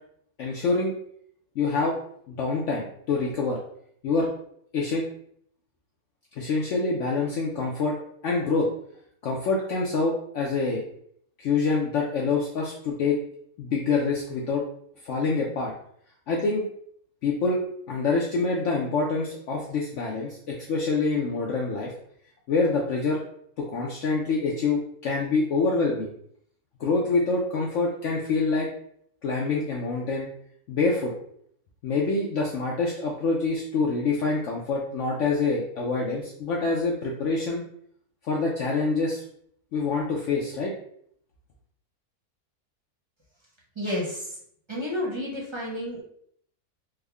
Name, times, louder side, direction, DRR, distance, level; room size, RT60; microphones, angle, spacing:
voice 1, 0.4-0.9 1.6-1.9 2.3-3.6 4.0-4.3 4.7-5.0 6.4-8.0 8.2-8.7 9.2-10.8 11.4-13.2 13.6-14.6 15.0-15.7 16.3-16.6 17.2-17.6 17.9-21.9 22.5-23.2 23.6-26.1 26.8-28.7 29.2-30.3 30.7-31.1 31.8-37.6 38.2-39.2 39.7-40.7, left 3 dB, 65° left, -2 dB, 0.8 m, -26 dB
voice 2, 43.8-44.3 44.7-46.0, left 1 dB, 25° right, -5 dB, 0.7 m, -30 dB
3.5 x 2.1 x 3.4 m, 0.66 s
omnidirectional pair, 1.6 m